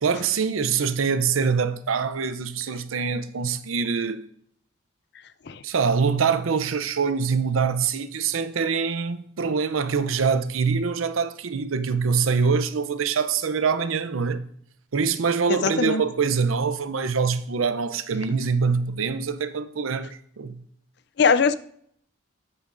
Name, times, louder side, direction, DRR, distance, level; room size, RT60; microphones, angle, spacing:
voice 1, 0.0-4.3 5.6-14.5 14.9-20.6, right 5 dB, 90° right, 0.6 m, -24 dB
voice 2, 15.5-16.0 21.2-21.5, left 5 dB, 55° left, 0.4 m, -21 dB
11.0 x 8.7 x 2.6 m
head